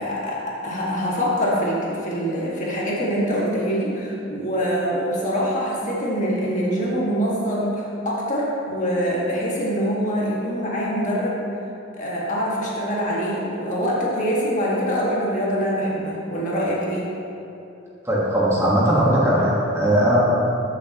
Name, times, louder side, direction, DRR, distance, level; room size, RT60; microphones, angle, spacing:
voice 1, 0.0-11.4 11.9-17.1, equal, 40° left, -6 dB, 1.9 m, -24 dB
voice 2, 18.0-20.2, right 1 dB, 15° right, -7 dB, 1.5 m, -19 dB
14.0 x 7.0 x 3.0 m, 2.9 s
head